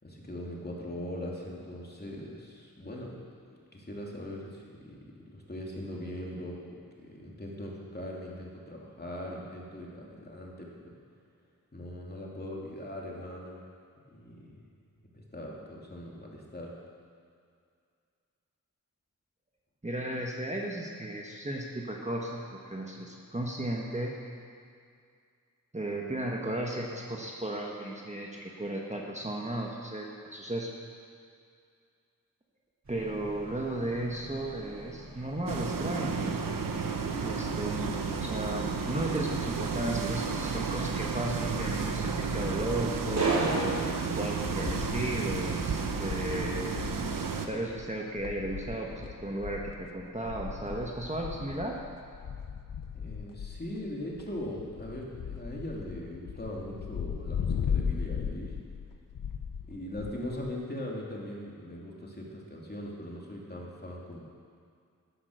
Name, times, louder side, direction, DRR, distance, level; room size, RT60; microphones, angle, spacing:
voice 1, 0.0-10.9 11.7-13.6 14.1-14.6 15.1-16.8 52.9-58.6 59.7-64.2, left 1 dB, 30° left, -3 dB, 2.8 m, -40 dB
voice 2, 19.8-24.1 25.7-30.7 32.9-36.3 37.2-43.3 44.1-46.8 47.5-51.7, right 1 dB, 20° right, -1 dB, 1.5 m, -35 dB
sound 1, 32.9-43.9, right 3 dB, 55° right, 2.6 m, -38 dB
sound 2, 35.5-47.5, right 5 dB, 75° right, 1.0 m, -32 dB
sound 3, 42.2-43.5 43.8-43.9 44.2-60.5, left 7 dB, 70° left, 0.7 m, -38 dB
11.5 x 10.5 x 6.5 m, 2.3 s
cardioid pair, 60°, 34 cm